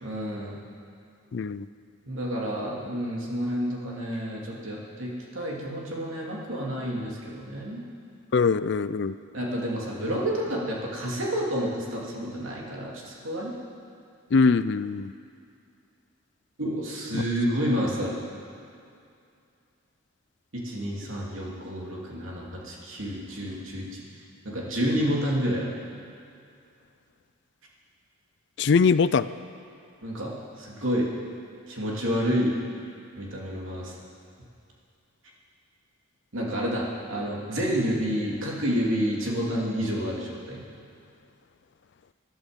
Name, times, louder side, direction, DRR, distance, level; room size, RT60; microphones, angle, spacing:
voice 1, 0.0-0.6 2.1-7.8 9.3-13.5 16.6-18.2 20.5-24.0 24.4-25.7 30.0-31.1 31.7-32.5 33.2-34.0 36.3-40.6, equal, 80° right, -3 dB, 2.9 m, -29 dB
voice 2, 1.3-1.7 8.3-9.1 14.3-15.1 28.6-29.3, left 5 dB, 55° left, 15 dB, 0.4 m, -22 dB
20.0 x 11.5 x 5.3 m, 2.5 s
head